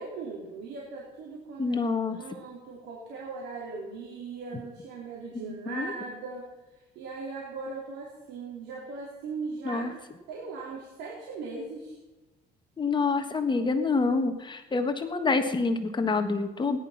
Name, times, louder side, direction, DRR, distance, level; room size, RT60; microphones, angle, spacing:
voice 1, 0.0-1.8 2.1-9.9 10.3-12.0, right 4 dB, 85° right, -4 dB, 3.9 m, -39 dB
voice 2, 1.6-2.2 5.7-5.9 9.6-9.9 12.8-16.8, left 4 dB, 25° left, 7 dB, 1.5 m, -27 dB
18.5 x 11.5 x 5.9 m, 1.1 s
cardioid pair, 110°, 17 cm